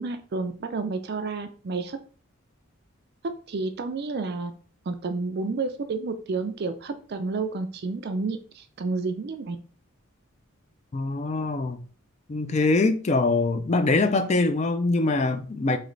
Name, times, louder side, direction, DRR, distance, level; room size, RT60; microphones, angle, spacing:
voice 1, 0.0-2.0 3.2-4.5 4.9-9.6, right 3 dB, 50° right, 0.4 m, -30 dB
voice 2, 10.9-11.8 12.3-15.8, left 3 dB, 30° left, 0.4 m, -23 dB
3.2 x 3.1 x 3.8 m
head